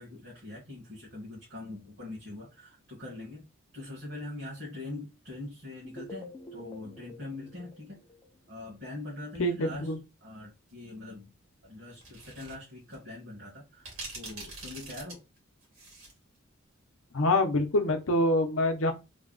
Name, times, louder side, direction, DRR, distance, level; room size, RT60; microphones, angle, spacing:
voice 1, 0.0-3.4 3.7-8.0 8.5-9.9 10.2-11.3 11.6-15.2, left 2 dB, 55° right, 1.5 m, -43 dB
sound 1, 5.8-8.8, left 2 dB, 20° left, 0.5 m, -48 dB
voice 2, 9.4-10.0 17.1-18.9, left 1 dB, 75° left, 0.7 m, -25 dB
sound 2, 12.0-12.5 12.9-13.0 13.8-16.2, right 3 dB, 75° right, 2.0 m, -43 dB
3.4 x 2.2 x 3.8 m
head